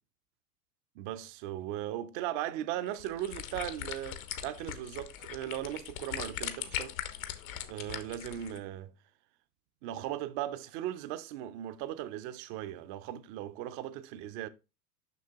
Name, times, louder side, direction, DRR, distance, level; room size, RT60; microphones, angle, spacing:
voice 1, 1.0-7.0 7.6-8.9 9.8-14.5, right 12 dB, 35° right, 0.5 m, -38 dB
sound 1, 2.8-8.6, left 11 dB, 60° left, 1.1 m, -40 dB
6.8 x 6.2 x 2.7 m
figure-of-eight pair, 95°, 47 cm